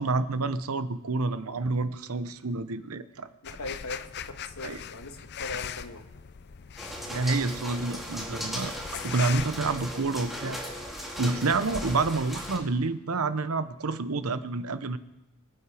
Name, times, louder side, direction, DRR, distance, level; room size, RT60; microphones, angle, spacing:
voice 1, 0.0-3.3 4.6-4.8 7.1-10.6 11.2-15.0, right 3 dB, 85° right, 13 dB, 0.8 m, -28 dB
voice 2, 3.4-6.0, left 2 dB, 80° left, 5 dB, 1.6 m, -40 dB
sound 1, 3.4-10.1, left 8 dB, 50° left, 0.5 m, -40 dB
sound 2, 6.8-12.6, equal, ahead, 2.4 m, -37 dB
24.5 x 8.8 x 4.9 m, 0.95 s
head